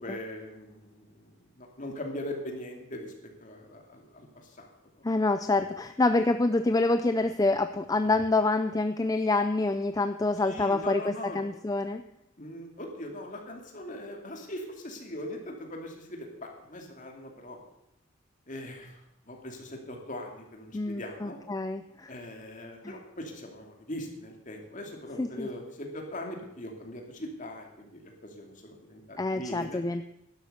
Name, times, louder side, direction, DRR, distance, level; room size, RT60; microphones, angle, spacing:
voice 1, 0.0-3.1 3.4-4.7 10.4-11.4 12.4-17.6 18.5-19.0 19.3-21.4 22.1-29.8, left 1 dB, 40° left, 1 dB, 2.6 m, -40 dB
voice 2, 5.0-12.0 20.7-22.1 22.8-23.0 25.2-25.5 29.2-30.0, left 2 dB, 15° left, 10 dB, 0.4 m, -27 dB
11.5 x 11.5 x 6.7 m, 0.83 s
head